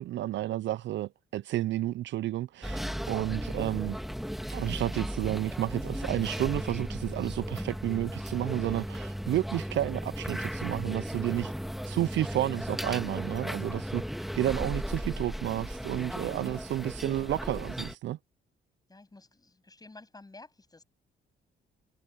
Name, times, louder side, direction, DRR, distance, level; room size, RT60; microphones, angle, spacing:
voice 1, 0.0-4.0 4.5-11.5 11.9-14.0 14.3-18.2, right 14 dB, 65° right, 0.5 m, -31 dB
sound 1, 2.6-17.9, equal, ahead, 1.7 m, -36 dB
voice 2, 18.9-20.8, left 2 dB, 20° left, 7.9 m, -52 dB
cardioid pair, 90°, 20 cm